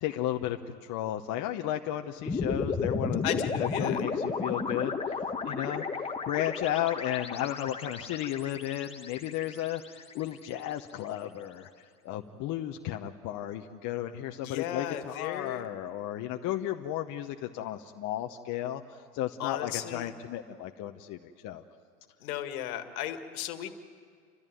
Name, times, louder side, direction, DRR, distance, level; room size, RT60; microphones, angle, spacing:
voice 1, 0.0-5.2 5.4-5.9 6.3-11.7 12.0-18.8 19.1-21.6, left 12 dB, 40° left, 4 dB, 1.0 m, -34 dB
sound 1, 2.3-10.6, left 4 dB, 10° left, 1.4 m, -33 dB
voice 2, 3.2-4.0 14.3-15.7 19.4-20.1 22.2-23.7, left 11 dB, 60° left, 8 dB, 2.0 m, -35 dB
30.0 x 14.0 x 9.1 m, 2.2 s
hypercardioid pair, 105°, 48 cm